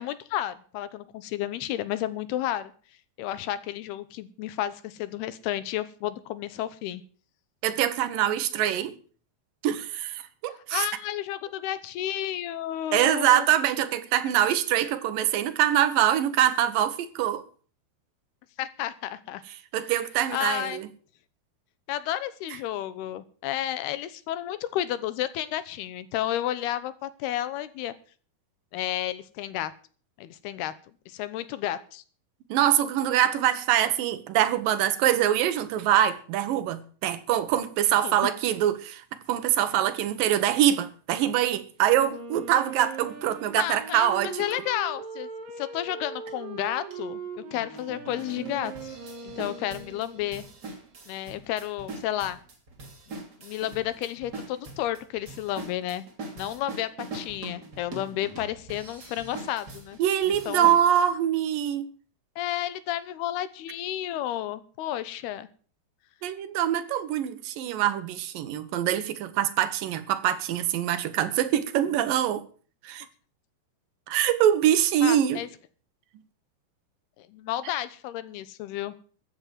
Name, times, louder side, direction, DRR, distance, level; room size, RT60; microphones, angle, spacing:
voice 1, 0.0-2.7 3.2-7.0 10.7-13.5 18.6-19.4 20.3-20.8 21.9-27.9 28.7-29.7 30.2-30.7 31.1-32.0 38.0-38.3 43.6-45.3 45.6-49.0 49.2-50.4 51.1-52.4 53.4-56.0 56.4-60.0 60.5-60.7 62.4-65.5 75.0-75.5 77.2-78.9, left 12 dB, 85° left, 3.0 m, -32 dB
voice 2, 7.6-8.9 9.6-10.9 12.9-17.4 19.7-20.9 32.5-39.0 39.3-44.4 60.0-61.9 66.2-72.4 72.8-73.1 74.1-75.4, right 11 dB, 70° right, 2.6 m, -24 dB
Wind instrument woodwind instrument, 41.9-50.5, right 5 dB, 50° right, 3.6 m, -40 dB
sound 1, 46.3-46.4 46.9-47.0 47.5-61.0, right 3 dB, 30° right, 2.8 m, -42 dB
14.0 x 8.9 x 7.4 m
omnidirectional pair, 4.5 m